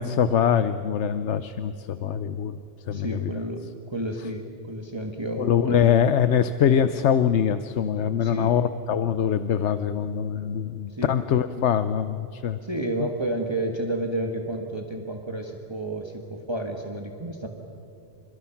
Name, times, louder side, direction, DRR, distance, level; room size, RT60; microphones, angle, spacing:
voice 1, 0.0-2.6 2.9-3.3 5.4-12.6, left 8 dB, 80° left, 12 dB, 1.0 m, -23 dB
voice 2, 2.9-6.1 8.2-8.6 10.9-11.1 12.6-17.5, right 1 dB, 25° right, 2 dB, 1.6 m, -31 dB
29.0 x 27.0 x 5.9 m, 2.8 s
omnidirectional pair, 1.2 m